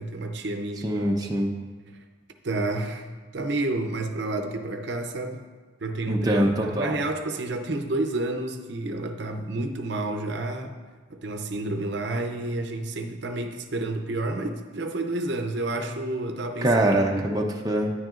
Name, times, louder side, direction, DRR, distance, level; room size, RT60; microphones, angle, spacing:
voice 1, 0.0-1.1 2.4-3.1 3.3-5.4 5.8-10.7 11.1-16.7 17.1-17.3, right 2 dB, 65° right, 5 dB, 0.6 m, -30 dB
voice 2, 0.8-1.5 6.1-7.0 16.6-17.9, right 1 dB, 20° right, 0 dB, 0.6 m, -23 dB
10.5 x 9.5 x 2.5 m, 1.4 s
head